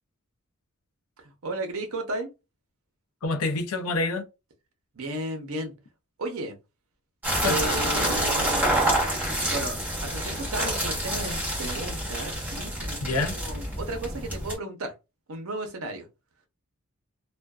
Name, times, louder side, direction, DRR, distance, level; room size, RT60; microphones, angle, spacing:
voice 1, 1.2-2.3 4.9-5.8 6.2-6.6 7.4-9.1 9.5-14.9 15.3-16.1, right 1 dB, 70° right, 0.7 m, -34 dB
voice 2, 3.2-4.3 7.4-7.6 13.0-13.4, left 3 dB, 85° left, 0.6 m, -27 dB
sound 1, 7.2-14.5, right 1 dB, 10° right, 1.0 m, -27 dB
2.5 x 2.2 x 2.3 m
head